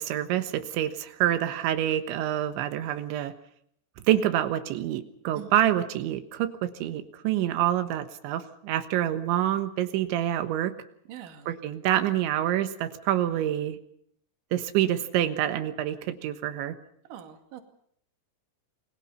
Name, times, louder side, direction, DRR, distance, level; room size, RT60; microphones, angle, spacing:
voice 1, 0.0-3.3 4.1-10.7 11.5-13.8 14.5-16.8, right 12 dB, 90° right, 9 dB, 3.7 m, -27 dB
voice 2, 11.1-11.5 17.1-17.6, right 10 dB, 55° right, 5 dB, 3.4 m, -43 dB
29.0 x 21.5 x 5.6 m, 0.66 s
omnidirectional pair, 5.2 m